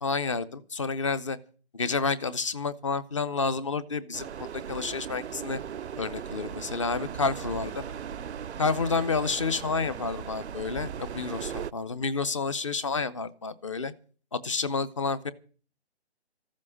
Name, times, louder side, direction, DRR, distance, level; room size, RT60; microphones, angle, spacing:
voice 1, 0.0-1.4 1.7-5.6 6.0-7.9 8.6-13.9 14.3-15.3, left 4 dB, 30° left, 17 dB, 0.7 m, -30 dB
sound 1, 4.1-11.7, right 8 dB, 75° right, 0.6 m, -38 dB
14.5 x 7.5 x 9.8 m, 0.42 s
hypercardioid pair, 165°, 33 cm